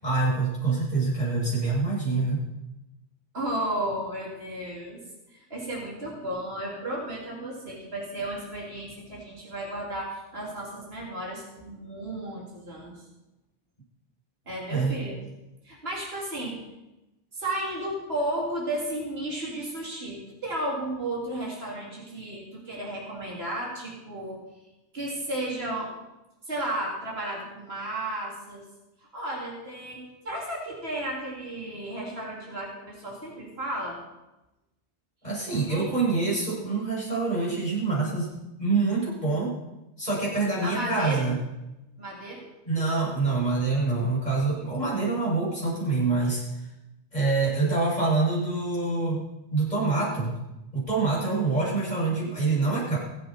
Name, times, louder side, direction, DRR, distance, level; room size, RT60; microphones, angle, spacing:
voice 1, 0.0-2.4 14.7-15.0 35.2-38.3 38.6-39.6 40.0-41.4 42.7-46.4 47.1-49.2 49.5-50.3 50.7-53.0, right 3 dB, 35° left, -6 dB, 7.5 m, -26 dB
voice 2, 3.3-5.0 5.3-13.0 14.5-15.2 15.6-16.6 17.3-24.4 24.9-25.9 26.5-28.6 29.1-34.0 35.7-36.0 40.6-41.3 42.0-42.4, right 1 dB, 55° right, -4 dB, 3.8 m, -33 dB
24.5 x 8.7 x 4.6 m, 0.98 s
omnidirectional pair, 1.2 m